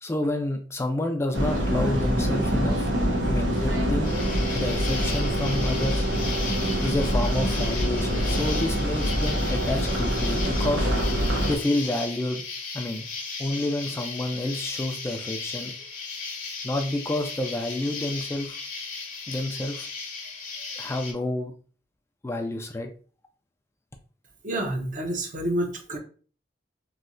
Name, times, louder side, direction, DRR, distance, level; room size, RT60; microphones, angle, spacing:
voice 1, 0.0-2.9 3.3-4.1 4.5-6.1 6.8-10.9 11.5-12.4 12.7-13.1 13.4-15.7 16.6-18.6 19.3-19.9 20.7-21.5 22.2-22.9, left 1 dB, 15° left, 5 dB, 0.3 m, -29 dB
sound 1, 1.3-11.6, equal, 90° right, 0.9 m, -25 dB
Insect, 4.0-21.1, left 4 dB, 50° left, 0.7 m, -36 dB
voice 2, 24.4-26.0, right 1 dB, 45° right, 3 dB, 0.6 m, -28 dB
3.1 x 2.7 x 2.5 m, 0.40 s
head